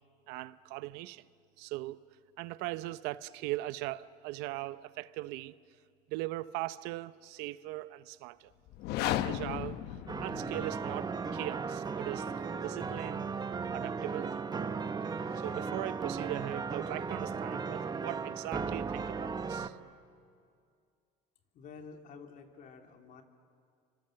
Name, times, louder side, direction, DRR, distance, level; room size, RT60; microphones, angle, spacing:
voice 1, 0.3-1.2 1.6-2.0 2.4-5.5 6.1-8.5 9.1-9.8 10.2-12.3 12.6-13.3 13.7-14.4 15.3-19.7, right 17 dB, 80° right, 0.7 m, -39 dB
sound 1, 8.7-10.8, left 12 dB, 75° left, 1.1 m, -34 dB
sound 2, 10.1-19.7, right 5 dB, 25° right, 1.1 m, -36 dB
voice 2, 21.5-23.2, left 5 dB, 50° left, 3.0 m, -50 dB
30.0 x 25.0 x 7.7 m
cardioid pair, 110°, 17 cm